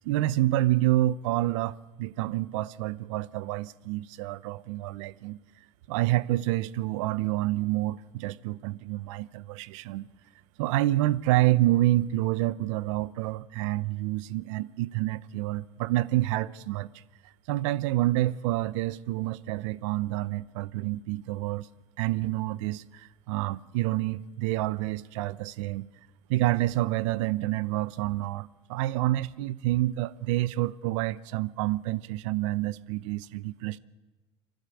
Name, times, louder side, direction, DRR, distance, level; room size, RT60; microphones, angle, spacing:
voice 1, 0.0-5.4 5.9-10.1 10.6-16.9 17.5-21.7 22.0-25.9 26.3-33.8, right 16 dB, 80° right, 0.7 m, -28 dB
30.0 x 12.0 x 8.4 m
supercardioid pair, 100°, 16 cm